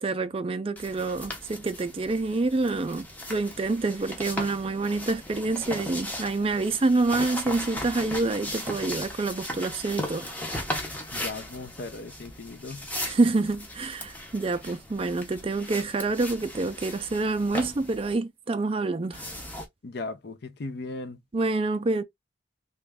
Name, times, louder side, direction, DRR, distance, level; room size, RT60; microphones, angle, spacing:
voice 1, 0.0-10.3 13.1-19.2 21.3-22.0, right 3 dB, 30° right, 0.4 m, -27 dB
sound 1, 0.8-18.1 19.1-19.7, left 1 dB, 10° left, 0.7 m, -37 dB
voice 2, 11.1-12.8 19.8-21.2, left 3 dB, 55° left, 0.5 m, -37 dB
3.0 x 2.4 x 3.4 m
head